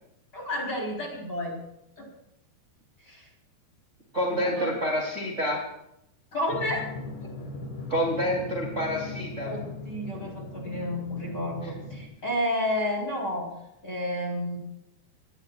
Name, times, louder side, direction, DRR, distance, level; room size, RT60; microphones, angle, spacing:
voice 1, 0.3-1.6 2.0-2.1 3.1-3.3 4.4-4.7 6.3-6.9 7.2-7.3 9.4-13.5 13.8-14.6, left 1 dB, 20° left, 0 dB, 3.7 m, -31 dB
voice 2, 4.1-5.6 7.9-9.5, equal, 20° right, -2 dB, 2.6 m, -28 dB
Drum, 6.5-12.1, left 2 dB, 75° left, 6.7 m, -39 dB
26.0 x 19.0 x 2.4 m, 0.81 s
omnidirectional pair, 5.3 m